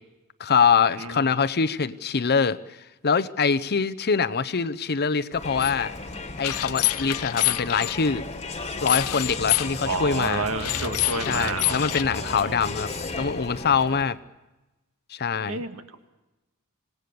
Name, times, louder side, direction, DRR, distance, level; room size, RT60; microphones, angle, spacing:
voice 1, 0.4-2.6 3.0-5.9 6.4-8.2 8.8-10.5 11.3-12.9 13.2-14.2 15.1-15.6, left 6 dB, 45° left, 14 dB, 0.8 m, -24 dB
Crowd, 5.3-14.2, left 3 dB, 30° left, 1.7 m, -35 dB
sound 1, 5.6-5.7 6.4-8.0 8.9-9.7 10.5-12.0, left 17 dB, 80° left, 0.7 m, -26 dB
voice 2, 9.8-12.6 15.5-15.8, right 3 dB, 70° right, 7 dB, 1.9 m, -30 dB
26.0 x 19.0 x 6.9 m, 1.0 s
head